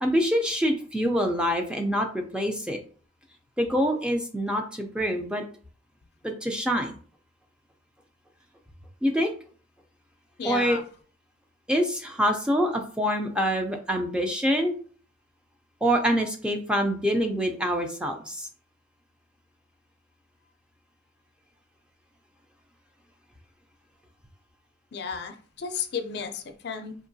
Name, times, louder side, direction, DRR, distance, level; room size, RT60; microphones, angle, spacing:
voice 1, 0.0-2.8 3.6-5.4 6.2-6.9 9.0-9.3 10.4-10.8 11.7-14.8 15.8-18.5, equal, 5° right, 3 dB, 0.5 m, -25 dB
voice 2, 10.4-10.8 24.9-26.9, left 6 dB, 60° left, 7 dB, 0.4 m, -33 dB
4.6 x 2.9 x 2.7 m, 0.42 s
head